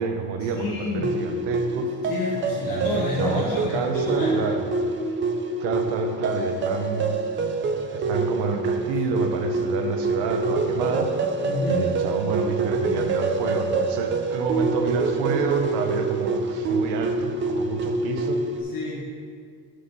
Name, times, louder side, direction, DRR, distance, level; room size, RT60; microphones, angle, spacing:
voice 1, 0.0-1.9 2.6-4.6 5.6-7.2 7.9-11.2 11.7-18.5, right 5 dB, 85° right, 5 dB, 0.9 m, -29 dB
voice 2, 0.5-1.1 2.0-4.4 11.4-11.9 18.6-19.1, left 3 dB, 55° left, -6 dB, 1.3 m, -29 dB
sound 1, 1.0-18.6, right 3 dB, 30° right, 0.4 m, -26 dB
6.5 x 5.4 x 4.0 m, 2.1 s
cardioid pair, 140°, 40 cm